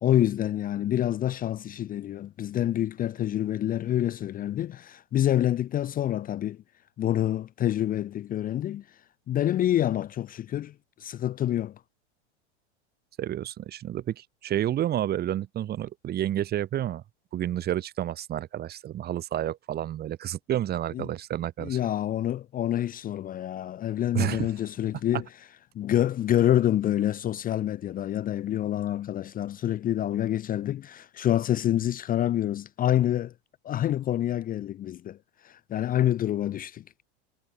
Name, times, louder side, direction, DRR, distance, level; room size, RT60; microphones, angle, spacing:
voice 1, 0.0-6.6 7.0-8.8 9.3-10.7 11.0-11.8 20.9-21.1 21.6-25.2 25.7-33.3 33.6-35.2 35.4-36.8, left 12 dB, 25° left, 0.7 m, -27 dB
voice 2, 13.2-17.0 17.3-21.8 24.1-24.5, right 12 dB, 30° right, 1.1 m, -30 dB
supercardioid pair, 125°, 35 cm